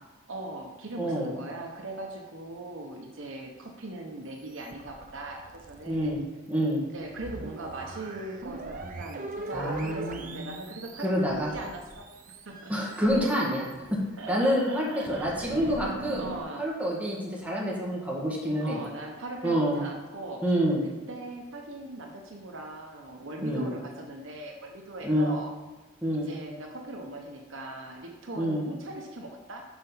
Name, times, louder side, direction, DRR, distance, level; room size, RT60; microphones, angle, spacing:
voice 1, 0.3-6.2 6.9-12.1 12.5-12.7 14.2-15.7 16.2-16.7 18.6-20.4 20.8-25.6 26.1-29.6, right 2 dB, 70° right, 2 dB, 1.0 m, -40 dB
voice 2, 1.0-1.3 5.9-6.2 6.5-6.8 9.5-10.5 11.0-11.5 12.7-14.0 14.3-16.2 16.6-18.8 19.4-19.8 20.4-20.8 23.4-23.7 25.0-25.3 26.0-26.3 28.4-28.7, equal, 5° right, -4 dB, 1.9 m, -27 dB
sound 1, 4.5-6.2 6.7-6.8 7.0-14.4 14.8-16.4, right 2 dB, 40° right, 0.6 m, -41 dB
6.1 x 5.4 x 5.7 m, 1.3 s
head